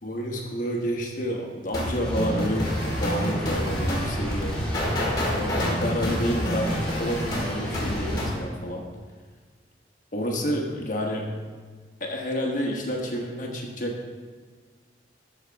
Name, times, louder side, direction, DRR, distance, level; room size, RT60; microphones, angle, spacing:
voice 1, 0.0-4.6 5.2-8.9 10.1-11.4 12.0-14.1, equal, 45° left, 0 dB, 1.2 m, -29 dB
sound 1, 1.7-8.4, equal, 25° left, 1.8 m, -28 dB
sound 2, 2.0-8.2, equal, 5° left, 2.2 m, -33 dB
13.0 x 5.1 x 3.4 m, 1.5 s
head